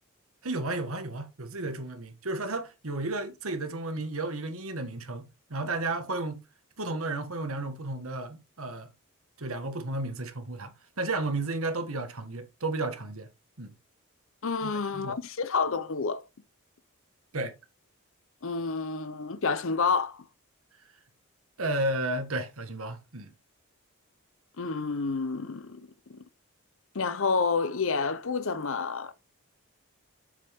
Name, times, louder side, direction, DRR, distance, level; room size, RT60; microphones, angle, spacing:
voice 1, 0.4-6.4 6.8-8.9 9.4-13.3 13.6-13.7 14.6-15.2 17.3-17.5 21.6-23.3, right 2 dB, 75° right, 1.6 m, -33 dB
voice 2, 14.4-16.2 18.4-20.2 24.6-26.2 26.9-29.1, left 4 dB, 65° left, 0.7 m, -29 dB
8.5 x 7.3 x 3.5 m
head